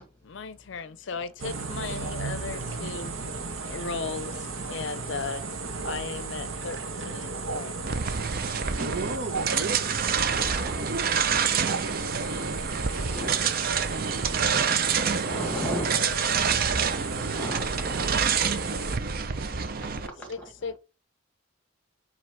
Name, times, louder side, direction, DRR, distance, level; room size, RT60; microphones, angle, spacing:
voice 1, 0.2-3.1 3.7-5.4 5.8-6.8 7.0-8.1 15.9-16.2 20.3-20.8, left 5 dB, 65° left, 0.5 m, -36 dB
sound 1, 1.4-19.0, right 4 dB, 90° right, 1.1 m, -35 dB
voice 2, 4.1-5.3 7.6-7.8 10.2-11.4, right 1 dB, 15° right, 2.1 m, -49 dB
voice 3, 6.7-7.3 7.8-8.1 8.4-10.0 12.6-13.0 18.3-18.8 19.2-20.3, right 3 dB, 60° right, 0.9 m, -41 dB
sound 2, 7.9-20.1, right 6 dB, 45° right, 0.5 m, -27 dB
voice 4, 13.1-13.4 14.3-16.1 17.3-18.5 19.8-20.0 20.4-20.5, equal, 5° left, 1.7 m, -36 dB
7.3 x 3.0 x 4.6 m
head